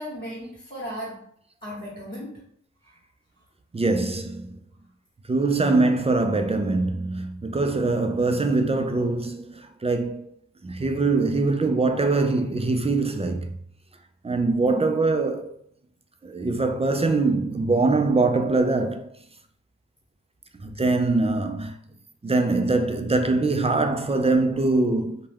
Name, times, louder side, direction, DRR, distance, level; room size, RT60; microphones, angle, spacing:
voice 1, 0.0-1.3 1.6-2.5 5.4-5.7 14.6-14.8, equal, 30° left, 1.1 m, -36 dB
voice 2, 3.7-4.5 5.3-10.3 10.6-13.5 14.2-15.6 16.2-19.1 20.6-21.7 22.2-25.2, right 3 dB, 20° right, 0.3 m, -23 dB
2.2 x 2.1 x 3.4 m
cardioid pair, 45°, 30 cm